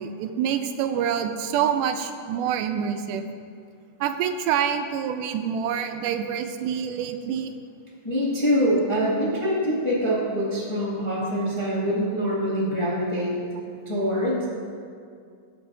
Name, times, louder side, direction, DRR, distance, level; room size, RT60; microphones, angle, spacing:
voice 1, 0.0-3.2 4.0-7.5, right 8 dB, 90° right, 7 dB, 2.2 m, -26 dB
voice 2, 8.0-13.3 13.8-14.5, equal, 15° left, -8 dB, 1.4 m, -24 dB
18.0 x 6.9 x 2.7 m, 2.3 s
omnidirectional pair, 3.6 m